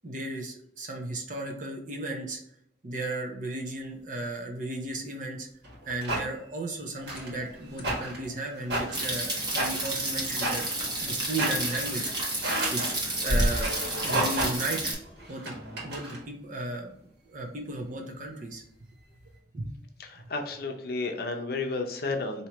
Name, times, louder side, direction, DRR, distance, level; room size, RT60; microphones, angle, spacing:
voice 1, 0.0-2.4 2.8-5.5 5.9-10.6 11.0-12.1 12.7-15.0 15.3-15.5 15.8-16.9 17.3-18.6 19.5-19.7 20.2-20.3, right 2 dB, 45° right, 2 dB, 0.8 m, -35 dB
sound 1, 5.6-6.2 7.1-7.4 7.8-8.2 8.5-9.1 9.5-10.8 11.2-11.8 12.3-12.9 13.5-14.8 15.2-16.2, right 1 dB, 75° right, 1.5 m, -32 dB
sound 2, 7.0-15.3, equal, 25° left, 0.9 m, -37 dB
sound 3, 8.9-14.9, right 2 dB, 25° right, 1.0 m, -31 dB
voice 2, 20.1-22.5, left 3 dB, 60° left, 3 dB, 0.7 m, -32 dB
4.6 x 2.8 x 2.9 m, 0.71 s
head